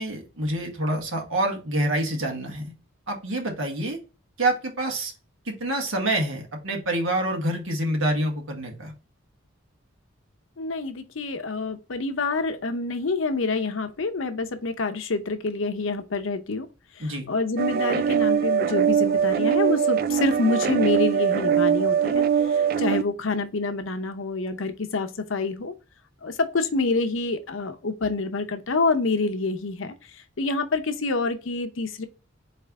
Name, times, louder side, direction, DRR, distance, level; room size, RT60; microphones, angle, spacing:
voice 1, 0.0-2.7 3.1-4.0 4.4-5.1 5.4-8.9 17.0-17.3, right 1 dB, 75° right, 1.6 m, -27 dB
voice 2, 10.6-16.7 17.3-22.2 22.5-25.7 26.2-29.9 30.4-32.1, left 3 dB, 70° left, 0.7 m, -27 dB
sound 1, 17.6-23.0, right 7 dB, 45° right, 0.3 m, -22 dB
4.3 x 3.3 x 3.5 m
head